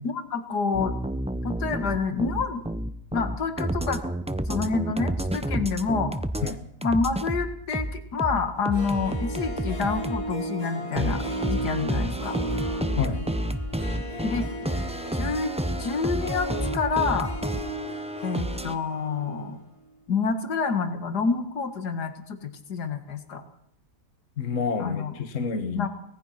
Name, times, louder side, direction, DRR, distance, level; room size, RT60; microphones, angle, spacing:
voice 1, 0.0-0.9 1.4-2.7 3.1-4.0 4.5-6.2 6.8-12.4 14.2-14.5 15.1-15.5 15.8-16.5 16.7-17.3 18.2-19.6 20.1-23.4 24.8-25.1 25.7-25.9, left 5 dB, 80° left, 8 dB, 2.4 m, -28 dB
sound 1, 0.7-6.5 6.8-10.2 11.0-18.7, right 1 dB, 5° right, 0.6 m, -30 dB
Harp, 8.6-19.6 19.8-19.9, right 1 dB, 20° left, 1.9 m, -35 dB
voice 2, 24.4-25.9, left 6 dB, 50° left, 8 dB, 1.7 m, -28 dB
25.0 x 18.5 x 5.8 m, 0.68 s
omnidirectional pair, 1.7 m